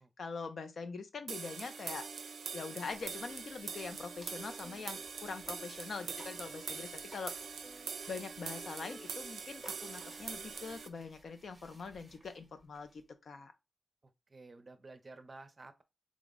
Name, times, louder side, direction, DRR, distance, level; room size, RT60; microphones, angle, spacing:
voice 1, 0.2-2.1 2.5-7.4 8.1-13.5, left 4 dB, 65° left, 0.5 m, -43 dB
sound 1, 1.3-10.9, right 5 dB, 85° right, 0.4 m, -43 dB
sound 2, 2.9-13.0, right 1 dB, 5° right, 1.0 m, -59 dB
voice 2, 6.4-6.8 14.0-15.8, right 3 dB, 35° right, 0.5 m, -54 dB
3.7 x 2.0 x 3.7 m
wide cardioid pair, 110°, 0 cm